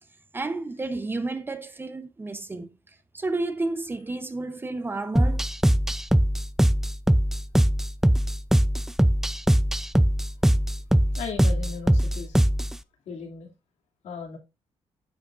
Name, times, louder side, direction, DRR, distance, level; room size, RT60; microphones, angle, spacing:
voice 1, 0.3-2.7 3.1-5.4, right 2 dB, 20° right, 0.8 m, -31 dB
sound 1, 5.2-12.8, right 1 dB, 5° right, 0.3 m, -21 dB
voice 2, 11.1-12.4 13.1-13.5 14.0-14.4, left 5 dB, 80° left, 2.5 m, -37 dB
10.5 x 7.0 x 2.5 m
cardioid pair, 130°, 11 cm